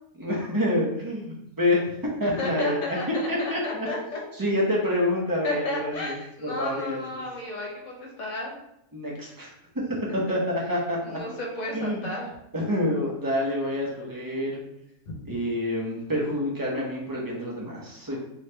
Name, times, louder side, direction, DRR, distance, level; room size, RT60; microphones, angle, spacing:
voice 1, 0.1-1.8 2.2-3.0 3.3-3.9 4.3-7.2 8.9-9.5 9.9-11.2 11.7-12.1 12.5-14.6 15.3-18.2, left 1 dB, 20° right, -4 dB, 0.6 m, -27 dB
voice 2, 2.4-4.2 5.4-8.5 11.0-12.3 15.1-15.2, left 2 dB, 60° left, -2 dB, 1.2 m, -33 dB
3.2 x 3.1 x 3.3 m, 0.80 s
omnidirectional pair, 1.6 m